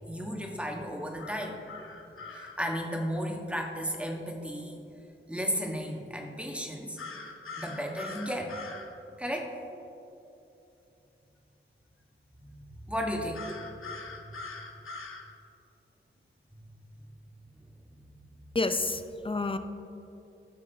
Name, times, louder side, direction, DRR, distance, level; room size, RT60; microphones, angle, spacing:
voice 1, 0.0-1.6 2.3-4.8 5.3-7.0 7.6-8.5 9.2-9.5 12.5-13.4 14.2-14.3, equal, 5° right, 1 dB, 1.3 m, -34 dB
sound 1, 1.2-2.6 7.0-8.9 13.3-15.2, left 4 dB, 75° left, 1.0 m, -42 dB
voice 2, 18.5-19.6, left 3 dB, 25° left, 9 dB, 0.5 m, -29 dB
15.5 x 6.1 x 3.4 m, 2.8 s
wide cardioid pair, 75°, 21 cm